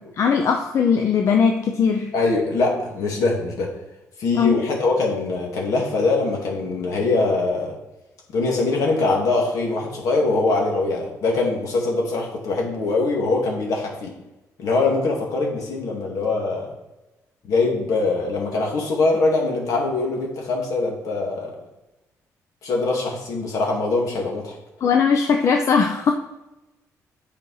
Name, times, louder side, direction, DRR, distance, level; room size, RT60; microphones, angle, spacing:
voice 1, 0.2-2.1 4.4-4.6 24.8-26.1, left 6 dB, 50° left, 4 dB, 0.6 m, -19 dB
voice 2, 2.1-3.7 4.2-7.7 8.3-14.1 14.6-16.7 17.5-21.5 22.6-24.6, left 3 dB, 70° left, -1 dB, 2.1 m, -22 dB
8.8 x 5.0 x 4.8 m, 1.0 s
cardioid pair, 120°, 6 cm